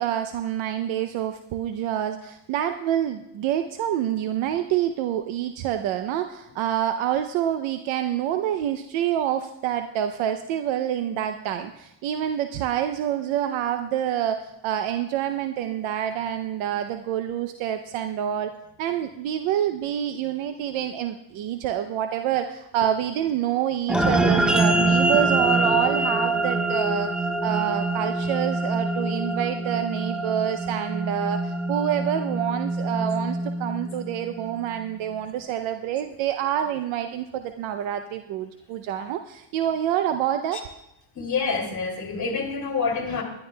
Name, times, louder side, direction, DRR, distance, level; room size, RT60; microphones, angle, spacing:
voice 1, 0.0-18.5 18.8-40.6, right 10 dB, 80° right, 7 dB, 0.7 m, -27 dB
sound 1, 23.9-34.5, right 2 dB, ahead, 0.6 m, -25 dB
voice 2, 41.1-43.2, left 5 dB, 40° left, 2 dB, 2.5 m, -27 dB
20.0 x 11.5 x 2.3 m, 0.86 s
cardioid pair, 105°, 46 cm